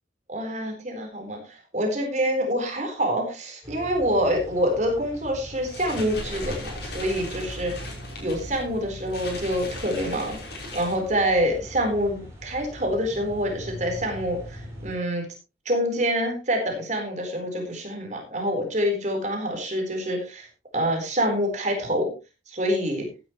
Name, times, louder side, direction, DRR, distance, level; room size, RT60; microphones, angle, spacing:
voice 1, 0.3-7.7 8.2-15.2 15.7-20.5 20.7-22.1 22.5-23.1, equal, 40° right, 3 dB, 4.1 m, -26 dB
sound 1, 3.6-14.9, equal, 15° right, 5.5 m, -41 dB
sound 2, 5.5-11.5, left 2 dB, 65° left, 5.7 m, -38 dB
15.5 x 10.0 x 3.1 m, 0.29 s
head